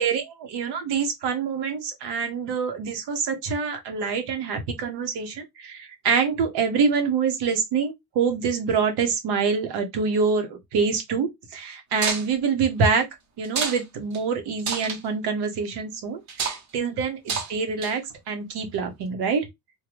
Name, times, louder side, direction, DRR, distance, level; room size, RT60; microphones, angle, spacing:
voice 1, 0.0-13.0 13.4-18.0 18.3-19.5, right 5 dB, 80° right, 1.0 m, -26 dB
sound 1, 12.0-12.3 13.4-13.8 14.1-14.2 14.6-15.0 16.3-16.6 17.3-17.5 17.8-18.1, right 5 dB, 45° right, 0.8 m, -28 dB
3.7 x 2.2 x 3.0 m
cardioid pair, 170°, 39 cm